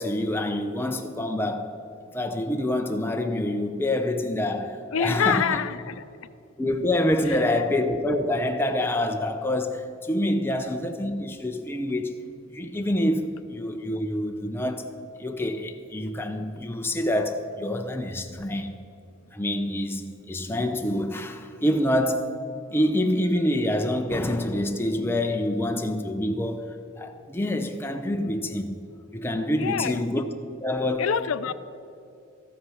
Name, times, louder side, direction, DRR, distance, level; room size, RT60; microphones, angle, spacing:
voice 1, 0.0-1.8 2.1-5.6 6.6-12.2 12.5-14.9 15.2-18.7 19.3-22.4 22.7-28.8 29.1-30.3 30.6-31.1, left 1 dB, 10° left, 0.5 m, -26 dB
voice 2, 4.9-6.0 7.3-7.4 29.5-30.0 31.0-31.5, left 7 dB, 80° left, 0.5 m, -26 dB
13.0 x 8.6 x 5.7 m
head